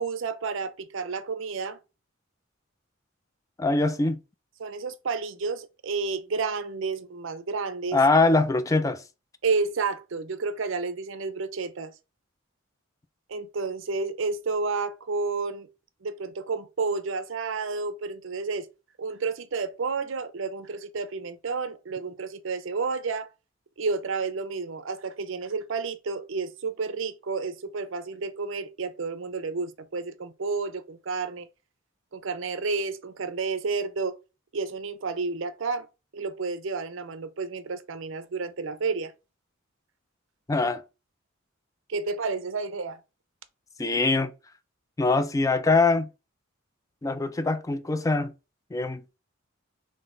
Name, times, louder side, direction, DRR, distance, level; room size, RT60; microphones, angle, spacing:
voice 1, 0.0-1.8 4.6-8.0 9.4-11.9 13.3-15.7 16.0-18.7 19.0-23.3 23.8-31.5 32.1-34.2 34.5-35.9 36.1-39.1 41.9-43.0, right 4 dB, 65° right, 0.6 m, -31 dB
voice 2, 3.6-4.2 7.9-9.0 40.5-40.8 43.8-44.3 45.0-46.1 47.0-48.3 48.7-49.0, left 3 dB, 15° left, 0.3 m, -23 dB
3.8 x 3.1 x 3.8 m
head